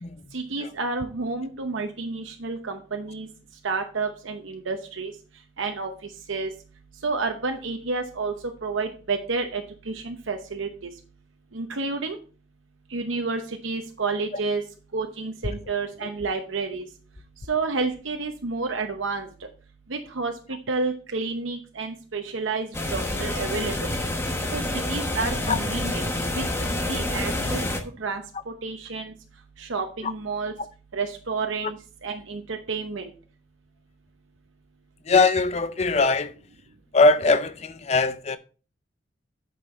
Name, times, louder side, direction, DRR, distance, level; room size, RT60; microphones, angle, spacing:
voice 1, 0.3-3.3 3.6-5.1 5.6-5.9 6.3-6.5 7.0-8.3 8.6-10.9 11.5-12.2 12.9-14.6 14.9-16.9 17.5-19.3 19.9-20.3 20.7-23.9 24.5-24.6 24.9-26.1 26.3-27.6 28.0-29.1 29.6-30.5 30.9-33.1, right 4 dB, 80° right, 0.9 m, -30 dB
sound 1, 22.7-27.8, left 1 dB, 15° left, 0.9 m, -28 dB
voice 2, 35.1-36.3 36.9-38.4, left 3 dB, 35° left, 0.5 m, -21 dB
8.6 x 5.4 x 3.9 m
head